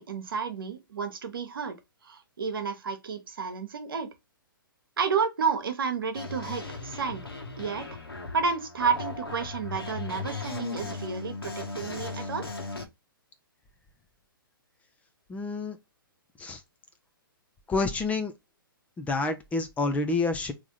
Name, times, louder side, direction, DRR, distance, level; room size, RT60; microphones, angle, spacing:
voice 1, 0.0-1.8 2.0-4.1 5.0-7.2 7.6-7.9 8.3-12.5, right 5 dB, 70° right, 1.1 m, -31 dB
sound 1, 6.1-12.8, left 3 dB, 85° left, 1.4 m, -37 dB
voice 2, 15.3-15.8 16.4-16.6 17.7-18.3 19.0-20.5, left 3 dB, 10° left, 0.6 m, -28 dB
3.6 x 3.1 x 3.6 m
figure-of-eight pair, 120°, 12 cm